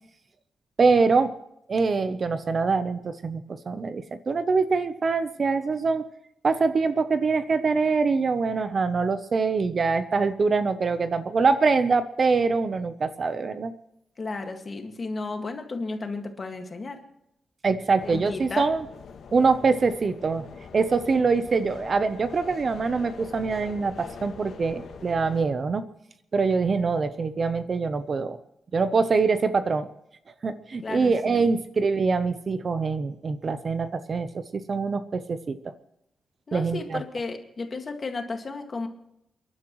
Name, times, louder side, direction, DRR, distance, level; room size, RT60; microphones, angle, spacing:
voice 1, 0.8-1.3 1.7-6.0 6.4-13.7 17.6-18.8 19.3-20.5 20.7-25.8 26.3-28.4 28.7-29.9 30.4-35.7 36.5-37.0, right 4 dB, 35° right, 12 dB, 0.7 m, -24 dB
voice 2, 14.2-17.0 18.1-18.7 30.8-31.5 36.5-38.9, left 3 dB, 30° left, 4 dB, 1.9 m, -33 dB
sound 1, 18.0-25.4, left 5 dB, 70° left, 1.9 m, -44 dB
29.0 x 11.5 x 3.1 m, 0.79 s
wide cardioid pair, 170°, 0 cm